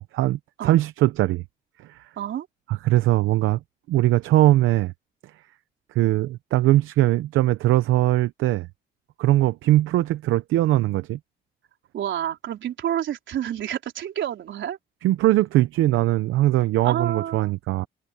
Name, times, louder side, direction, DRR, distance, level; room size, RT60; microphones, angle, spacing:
voice 1, 0.0-1.4 1.9-2.0 2.7-3.6 3.9-4.9 5.9-8.7 9.2-11.2 15.0-17.9, right 15 dB, 85° right, 0.7 m, -21 dB
voice 2, 2.2-2.5 11.9-14.8 16.8-17.6, right 10 dB, 70° right, 3.9 m, -29 dB
cardioid pair, 90°, 20 cm